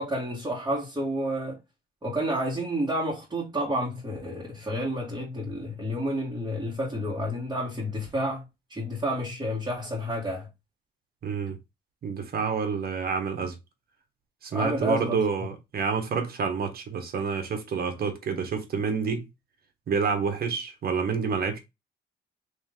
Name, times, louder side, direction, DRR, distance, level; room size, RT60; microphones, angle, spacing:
voice 1, 0.0-1.6 2.0-8.4 8.7-10.5 14.5-15.2, equal, 20° right, 1.8 m, -30 dB
voice 2, 11.2-11.6 12.0-13.6 14.4-19.2 19.9-21.6, right 5 dB, 50° right, 1.3 m, -28 dB
3.2 x 3.1 x 3.7 m
cardioid pair, 90°, 20 cm